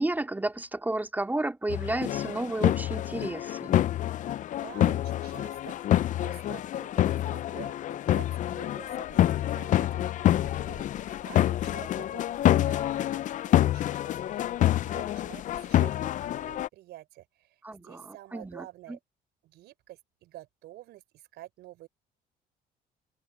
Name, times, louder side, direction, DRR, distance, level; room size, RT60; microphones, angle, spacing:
voice 1, 0.0-3.8 17.6-19.0, right 2 dB, 10° right, 2.8 m, -32 dB
sound 1, 1.7-16.7, left 12 dB, 50° left, 0.4 m, -27 dB
voice 2, 4.6-10.9 11.2-14.5 14.8-19.0 19.4-21.9, right 15 dB, 80° right, 5.5 m, -49 dB
cardioid pair, 110°, 17 cm